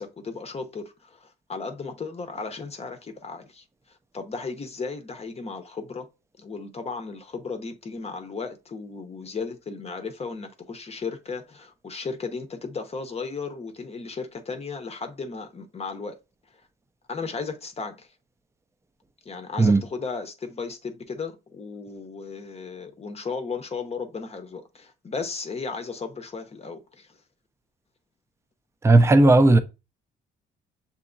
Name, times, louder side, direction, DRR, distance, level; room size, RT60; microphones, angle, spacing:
voice 1, 0.0-6.1 6.4-16.2 17.1-18.1 19.2-27.2, left 4 dB, 30° left, 0.7 m, -35 dB
voice 2, 28.8-29.6, right 2 dB, 15° right, 0.4 m, -15 dB
6.7 x 2.8 x 2.5 m
cardioid pair, 90°, 20 cm